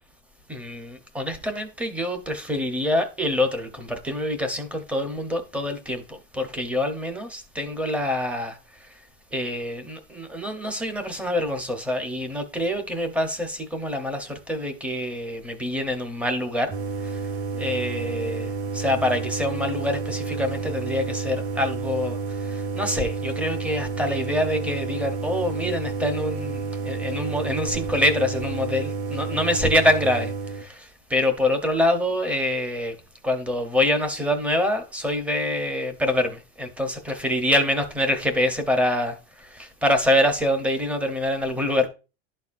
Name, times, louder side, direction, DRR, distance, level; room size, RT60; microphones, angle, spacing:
voice 1, 0.5-9.0 9.3-16.7 17.0-17.3 17.6-32.9 33.2-41.9, left 1 dB, 5° right, 0.6 m, -26 dB
sound 1, 16.7-30.6, right 5 dB, 45° right, 1.0 m, -30 dB
11.5 x 4.2 x 2.4 m
supercardioid pair, 165°, 34 cm